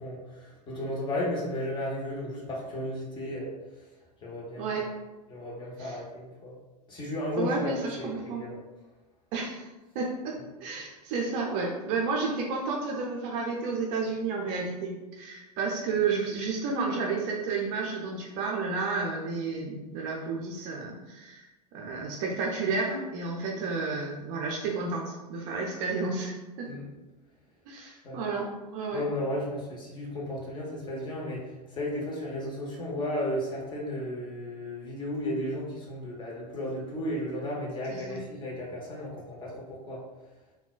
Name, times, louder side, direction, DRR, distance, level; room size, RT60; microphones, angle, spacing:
voice 1, 0.0-3.5 4.2-4.7 5.3-6.6 6.9-7.7 8.0-8.6 26.7-26.9 28.0-28.2 28.9-31.4 31.7-40.0, left 1 dB, 20° left, -3 dB, 0.9 m, -34 dB
voice 2, 7.4-8.4 9.3-9.7 9.9-10.3 10.6-26.7 27.7-29.0 37.9-38.2, right 4 dB, 40° right, -1 dB, 0.5 m, -31 dB
3.7 x 2.2 x 2.4 m, 1.1 s
figure-of-eight pair, 85°, 21 cm